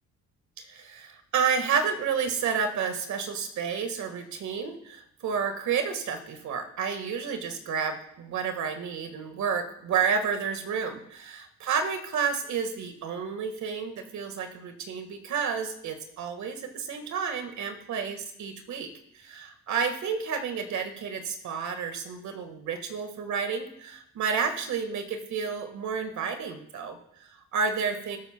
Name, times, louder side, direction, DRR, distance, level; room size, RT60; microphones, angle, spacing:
voice 1, 0.6-28.2, right 6 dB, 70° right, 7 dB, 1.6 m, -30 dB
20.0 x 7.6 x 2.2 m, 0.73 s
cardioid pair, 90°, 30 cm